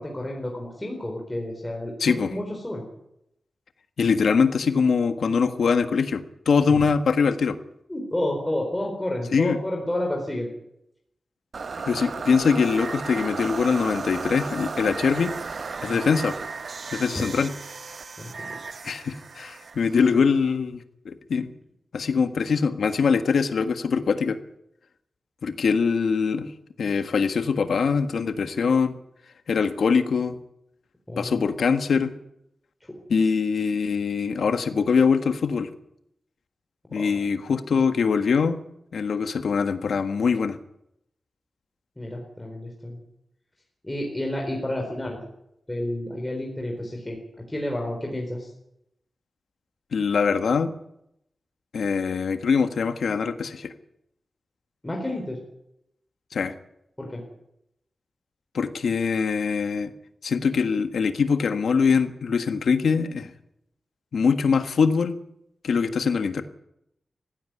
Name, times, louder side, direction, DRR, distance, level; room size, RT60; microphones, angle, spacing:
voice 1, 0.0-2.9 6.6-6.8 7.9-10.5 15.8-16.1 17.1-17.3 18.2-18.5 31.1-31.5 37.0-37.2 42.0-43.0 43.8-45.2 45.7-47.2 47.5-48.5 54.8-55.4 57.0-57.2, left 1 dB, 10° left, 0 dB, 4.3 m, -30 dB
voice 2, 2.0-2.3 4.0-7.6 9.3-9.6 11.8-15.3 15.8-16.3 16.9-17.5 18.8-21.5 21.9-24.4 25.4-26.5 26.8-28.9 29.5-30.4 31.2-32.1 33.1-35.7 36.9-38.6 38.9-40.6 49.9-50.7 51.7-53.7 56.3-56.5 58.5-59.9 60.2-63.3 64.1-65.2 65.6-66.4, left 5 dB, 85° left, 8 dB, 1.6 m, -23 dB
sound 1, 11.5-20.6, right 4 dB, 55° right, 0.9 m, -35 dB
18.5 x 15.5 x 9.7 m, 0.81 s
wide cardioid pair, 130°, 0 cm